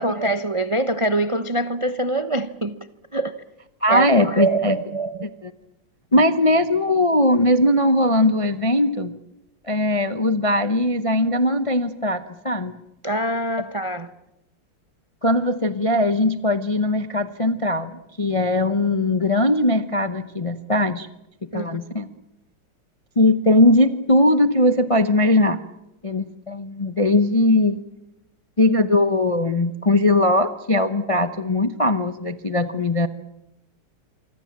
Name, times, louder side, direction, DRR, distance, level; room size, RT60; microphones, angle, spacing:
voice 1, 0.0-2.8 3.1-3.3 3.9-5.3 13.0-14.1 21.5-21.8, right 2 dB, 55° right, 0.3 m, -24 dB
voice 2, 3.8-4.8 5.4-5.5 6.1-9.2 9.7-12.8 15.2-21.1 21.5-22.1 23.2-25.6 26.0-27.8 28.6-33.1, left 1 dB, 40° left, 0.4 m, -20 dB
28.0 x 25.0 x 7.5 m
omnidirectional pair, 2.3 m